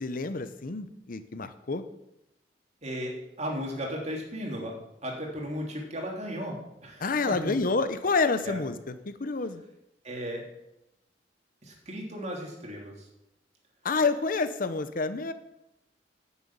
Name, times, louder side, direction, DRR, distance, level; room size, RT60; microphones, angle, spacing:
voice 1, 0.0-1.8 7.0-9.6 13.8-15.3, left 4 dB, 50° left, 11 dB, 0.8 m, -28 dB
voice 2, 2.8-7.5 8.4-8.6 10.0-10.5 11.6-13.1, equal, 40° right, 0 dB, 3.1 m, -36 dB
10.5 x 7.2 x 8.7 m, 0.88 s
head